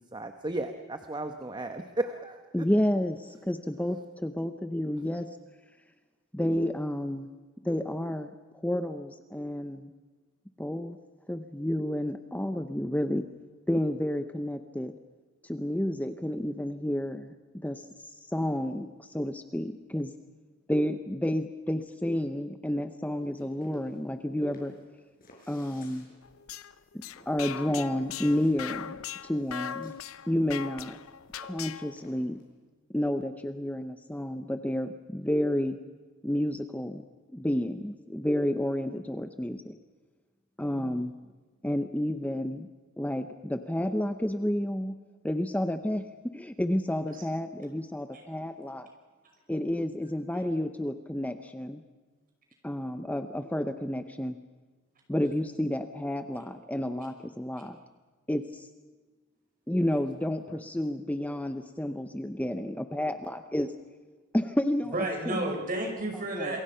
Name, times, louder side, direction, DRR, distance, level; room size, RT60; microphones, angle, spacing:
voice 1, 0.0-2.6 40.8-41.0 60.5-60.6, right 2 dB, 20° right, 7 dB, 1.0 m, -35 dB
voice 2, 2.5-5.3 6.3-7.3 7.6-9.9 10.6-11.0 11.3-13.3 13.7-14.9 15.4-17.3 17.6-17.9 18.3-20.1 20.7-24.7 25.5-26.1 27.3-29.0 29.2-30.0 30.3-31.0 31.4-32.4 32.9-35.8 36.2-37.0 37.3-39.8 40.6-41.1 41.6-42.7 43.0-45.0 45.2-46.0 46.3-48.9 49.5-51.8 52.6-54.4 55.1-57.8 58.3-58.7 59.7-63.7 64.3-64.9 65.5-65.6 66.4-66.5, left 1 dB, 5° left, 8 dB, 0.8 m, -30 dB
sound 1, 23.2-32.5, left 1 dB, 45° left, 6.0 m, -58 dB
sound 2, 26.2-32.0, left 9 dB, 75° left, 0.7 m, -40 dB
voice 3, 64.8-66.6, right 1 dB, 45° right, 2 dB, 5.9 m, -32 dB
27.0 x 23.0 x 5.7 m, 1.3 s
head